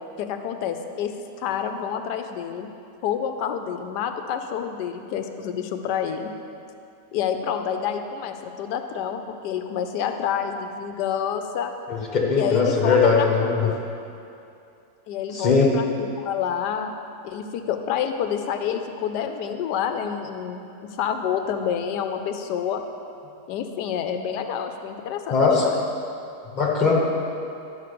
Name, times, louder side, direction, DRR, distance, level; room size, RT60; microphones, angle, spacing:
voice 1, 0.2-2.7 3.0-6.3 7.1-11.7 12.3-13.8 15.1-16.9 17.2-22.8 23.5-25.8, left 8 dB, 90° left, 7 dB, 1.2 m, -28 dB
voice 2, 11.9-13.7 15.3-15.7 25.3-25.6 26.5-26.9, left 4 dB, 30° left, -2 dB, 1.4 m, -20 dB
11.0 x 5.1 x 6.7 m, 2.6 s
omnidirectional pair, 1.7 m